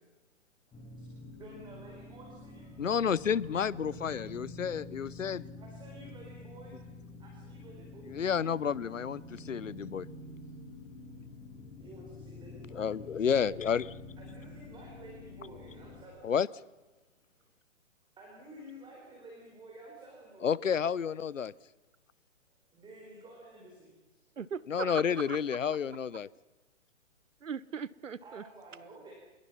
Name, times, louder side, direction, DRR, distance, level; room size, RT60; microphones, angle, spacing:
sound 1, 0.7-16.0, left 2 dB, 15° left, 5.1 m, -48 dB
voice 1, 0.7-1.1 1.4-2.8 4.8-4.9 5.2-6.8 7.2-8.1 10.4-10.5 11.8-12.9 14.2-16.3 18.2-20.7 22.7-24.2 28.2-29.1, right 1 dB, 10° right, 0 dB, 4.7 m, -52 dB
voice 2, 2.8-5.4 8.1-10.1 12.7-13.9 16.2-16.5 20.4-21.5 24.7-26.3, left 7 dB, 80° left, 22 dB, 0.9 m, -30 dB
voice 3, 24.4-25.4 27.4-28.4, right 6 dB, 85° right, 20 dB, 1.1 m, -39 dB
27.5 x 21.5 x 5.7 m, 1.2 s
hypercardioid pair, 130°, 38 cm